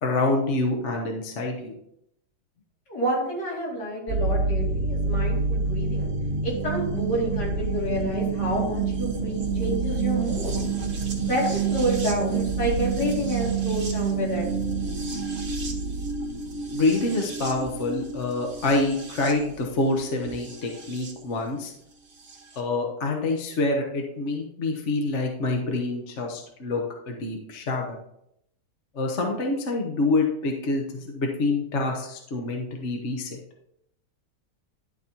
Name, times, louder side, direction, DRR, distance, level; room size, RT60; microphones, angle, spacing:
voice 1, 0.0-1.7 16.7-21.7 22.6-28.0 28.9-33.4, left 2 dB, 50° left, 1 dB, 1.2 m, -26 dB
voice 2, 2.9-6.1 6.4-10.5 11.2-14.5, equal, 70° left, -5 dB, 3.2 m, -29 dB
sound 1, 4.1-21.1 22.3-22.4, right 4 dB, 45° right, 1.2 m, -28 dB
11.0 x 4.1 x 4.4 m, 0.77 s
omnidirectional pair, 1.8 m